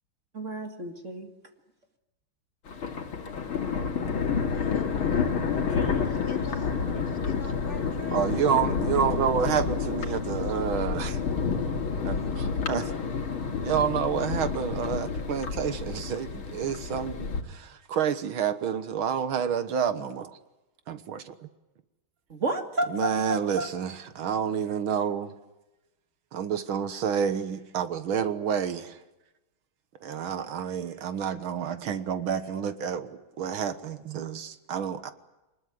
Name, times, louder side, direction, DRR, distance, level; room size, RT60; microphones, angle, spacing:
voice 1, 0.3-1.3 22.3-23.7, right 2 dB, 35° right, 2.4 m, -31 dB
Thunder, 2.7-17.4, left 6 dB, 90° left, 3.1 m, -29 dB
voice 2, 4.5-5.3 5.7-8.3, left 3 dB, 45° left, 4.1 m, -43 dB
voice 3, 8.1-11.2 12.0-12.9 13.6-20.4 20.9-21.5 22.9-25.3 26.3-29.0 30.0-35.1, right 8 dB, 80° right, 2.1 m, -29 dB
25.0 x 20.5 x 9.2 m
omnidirectional pair, 2.2 m